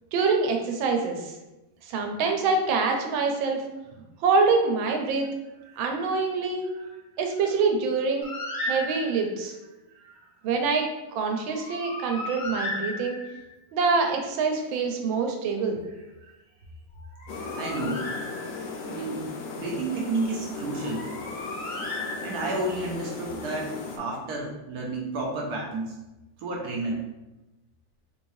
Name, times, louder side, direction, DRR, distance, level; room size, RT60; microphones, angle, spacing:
voice 1, 0.1-1.3 1.9-3.6 4.2-5.3 5.8-6.6 7.2-8.3 8.6-9.5 10.4-10.9 11.1-13.2 13.7-15.8, right 4 dB, 90° right, 3 dB, 1.4 m, -25 dB
Bird, 8.2-9.4 11.4-13.5 17.0-18.8 20.8-22.7, left 2 dB, 55° left, 0.5 m, -35 dB
sound 1, 17.3-24.0, left 4 dB, 70° left, 1.2 m, -37 dB
voice 2, 17.4-18.1 18.9-19.3 19.5-21.1 22.2-26.0 26.4-27.0, right 2 dB, 70° right, -1 dB, 1.0 m, -31 dB
3.9 x 3.1 x 2.6 m, 1.0 s
omnidirectional pair, 2.1 m